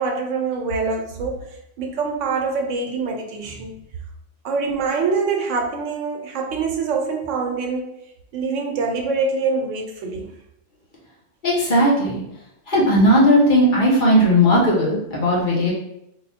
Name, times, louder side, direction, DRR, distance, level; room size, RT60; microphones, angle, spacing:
voice 1, 0.0-1.5 1.8-3.7 4.4-7.9 8.3-10.3, right 4 dB, 85° right, 2 dB, 1.0 m, -24 dB
voice 2, 11.4-12.2 12.7-15.7, equal, 45° left, -5 dB, 1.0 m, -16 dB
2.9 x 2.2 x 4.2 m, 0.82 s
omnidirectional pair, 1.2 m